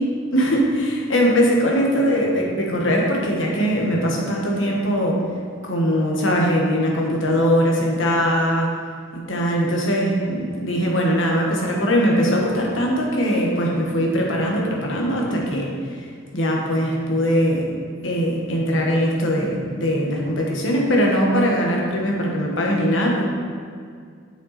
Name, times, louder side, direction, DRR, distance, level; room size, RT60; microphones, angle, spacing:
voice 1, 0.3-5.2 5.6-8.7 9.1-15.7 16.3-17.7 18.0-23.2, equal, 70° left, -1 dB, 1.5 m, -21 dB
7.9 x 6.0 x 4.2 m, 2.1 s
head